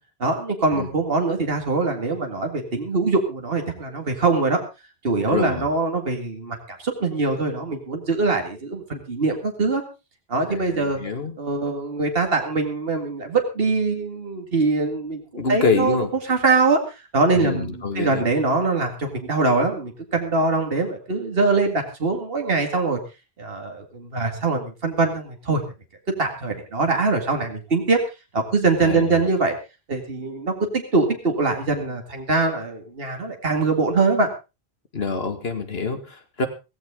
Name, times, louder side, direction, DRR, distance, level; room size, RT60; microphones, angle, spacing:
voice 1, 0.2-4.6 5.0-9.8 10.3-11.0 11.4-23.0 23.4-25.6 26.2-28.0 28.3-29.6 29.9-34.3, right 3 dB, 65° right, 3 dB, 2.4 m, -23 dB
voice 2, 5.3-5.7 10.5-11.4 15.4-16.1 17.3-18.3 28.8-29.2 34.9-36.5, left 4 dB, 70° left, 8 dB, 2.2 m, -26 dB
16.0 x 15.5 x 3.6 m, 0.29 s
omnidirectional pair, 1.1 m